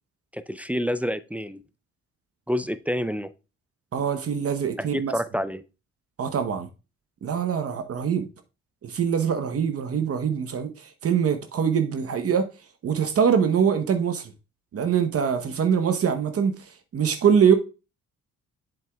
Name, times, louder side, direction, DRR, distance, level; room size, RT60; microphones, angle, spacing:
voice 1, 0.3-1.6 2.5-3.3 4.8-5.6, equal, 5° right, 0.4 m, -28 dB
voice 2, 3.9-5.1 6.2-6.7 7.2-8.3 8.8-12.5 12.8-14.3 14.7-17.5, right 7 dB, 50° right, 0.9 m, -23 dB
7.6 x 7.5 x 2.3 m
cardioid pair, 90°, 30 cm